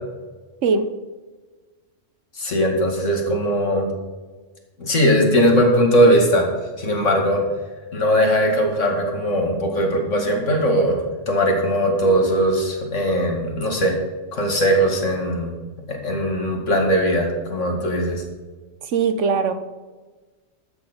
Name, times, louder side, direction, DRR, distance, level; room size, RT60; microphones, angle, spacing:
voice 1, 2.4-3.9 4.8-6.5 6.8-7.4 7.9-11.0 11.3-14.0 14.3-15.5 15.9-18.2, equal, 80° left, 1 dB, 2.5 m, -19 dB
voice 2, 18.9-19.5, right 5 dB, 75° right, 10 dB, 1.2 m, -20 dB
12.5 x 6.9 x 5.1 m, 1.3 s
omnidirectional pair, 1.3 m